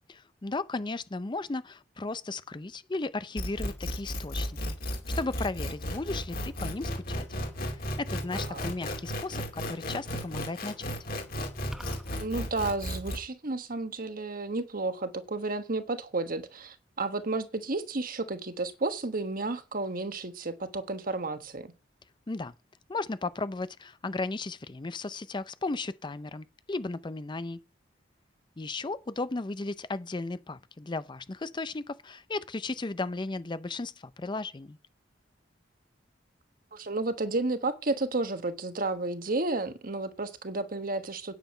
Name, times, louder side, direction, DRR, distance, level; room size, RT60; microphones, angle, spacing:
voice 1, 0.1-4.8 5.2-7.3 7.6-10.9 22.3-22.5 22.9-27.6 28.6-34.8, left 3 dB, 25° left, 0.5 m, -35 dB
sound 1, 3.4-13.2, equal, 50° left, 2.5 m, -34 dB
voice 2, 8.3-8.6 12.2-21.7 36.7-41.3, right 2 dB, 50° right, 1.4 m, -32 dB
sound 2, 11.7-12.2, equal, ahead, 0.9 m, -43 dB
9.4 x 9.1 x 5.4 m
head